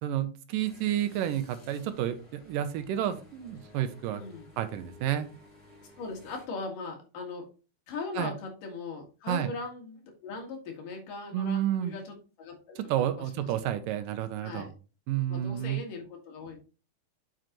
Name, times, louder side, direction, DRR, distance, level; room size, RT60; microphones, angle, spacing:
voice 1, 0.0-4.2 4.6-5.3 8.2-8.3 9.3-9.5 11.3-12.0 12.8-14.7 15.1-15.8, right 11 dB, 80° right, 10 dB, 2.3 m, -30 dB
sound 1, 0.6-6.4, left 1 dB, 20° left, 1.8 m, -54 dB
voice 2, 4.2-4.5 6.0-7.5 7.9-13.5 14.4-14.7 15.3-16.6, left 3 dB, 70° left, 1 dB, 3.4 m, -39 dB
7.6 x 6.2 x 3.0 m, 0.34 s
omnidirectional pair, 4.0 m